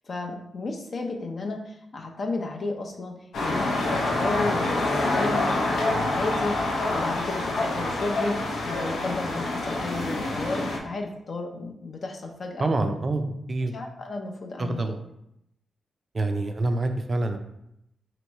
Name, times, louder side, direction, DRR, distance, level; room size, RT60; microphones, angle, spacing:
voice 1, 0.1-6.6 6.9-12.7 13.7-14.9, left 3 dB, 50° left, 2 dB, 0.6 m, -33 dB
sound 1, 3.3-10.8, left 2 dB, 90° left, 0.7 m, -26 dB
voice 2, 12.6-13.8 14.6-15.0 16.1-17.4, right 2 dB, 35° right, 6 dB, 0.4 m, -26 dB
3.0 x 3.0 x 4.5 m, 0.81 s
wide cardioid pair, 110°, 0 cm